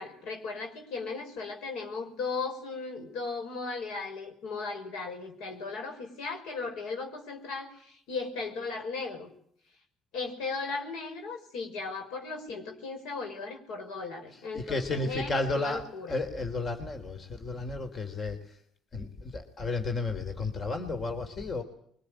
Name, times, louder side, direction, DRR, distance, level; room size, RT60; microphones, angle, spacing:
voice 1, 0.0-9.3 10.1-16.2, left 4 dB, 80° left, 4 dB, 5.6 m, -37 dB
voice 2, 14.3-18.4 18.9-19.1 19.3-21.6, left 3 dB, 45° left, 7 dB, 3.4 m, -32 dB
23.5 x 20.5 x 9.9 m, 0.65 s
supercardioid pair, 65°, 0 cm